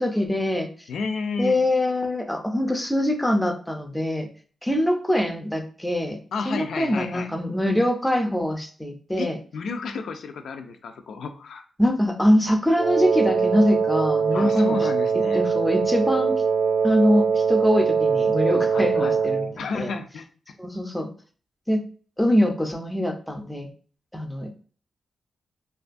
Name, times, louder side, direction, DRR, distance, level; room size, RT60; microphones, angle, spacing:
voice 1, 0.0-0.9 1.4-4.3 4.6-6.2 6.5-9.4 11.8-14.9 15.3-16.4 16.8-19.5 19.7-19.9 20.6-21.1 21.7-21.8 22.2-23.7 24.1-24.6, left 1 dB, 5° left, 4 dB, 0.4 m, -23 dB
voice 2, 0.9-1.6 6.3-7.3 9.2-9.3 9.5-11.6 14.3-15.4 18.7-19.2 19.6-20.3, left 4 dB, 80° left, 6 dB, 0.3 m, -31 dB
Wind instrument woodwind instrument, 12.8-19.5, right 6 dB, 65° right, 0.4 m, -22 dB
2.5 x 2.3 x 2.4 m, 0.40 s
wide cardioid pair, 125°, 0 cm